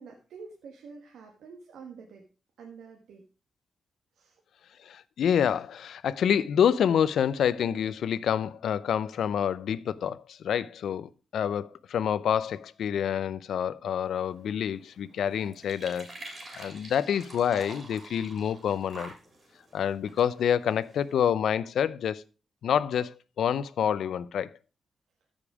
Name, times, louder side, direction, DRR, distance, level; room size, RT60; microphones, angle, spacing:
voice 1, 0.0-2.3 2.6-3.2 4.1-4.4, right 5 dB, 90° right, 1.4 m, -47 dB
voice 2, 4.9-16.1 16.6-19.1 19.7-22.2 22.6-24.5, left 8 dB, 80° left, 0.5 m, -27 dB
sound 1, 14.0-21.2, right 2 dB, 35° right, 3.6 m, -48 dB
14.0 x 5.1 x 4.8 m
cardioid pair, 115°, 0 cm